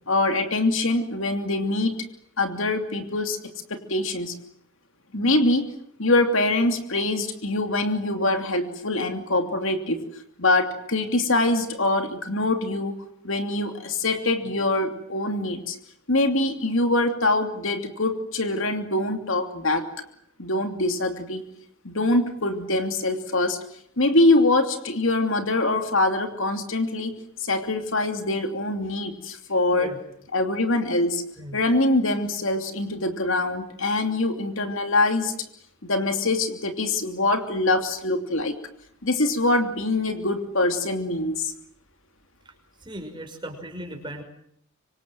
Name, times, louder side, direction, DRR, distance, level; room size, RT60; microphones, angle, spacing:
voice 1, 0.1-1.9 2.4-3.4 3.7-4.3 5.1-5.7 6.0-10.0 10.4-13.0 13.2-15.8 16.1-19.8 20.4-21.4 21.8-23.6 24.0-27.1 27.4-29.9 30.3-31.2 31.5-35.3 35.8-38.5 39.0-41.5, left 2 dB, 60° left, 6 dB, 2.9 m, -24 dB
voice 2, 42.8-44.2, right 1 dB, 20° right, 4 dB, 6.0 m, -37 dB
26.0 x 25.5 x 7.8 m, 0.70 s
head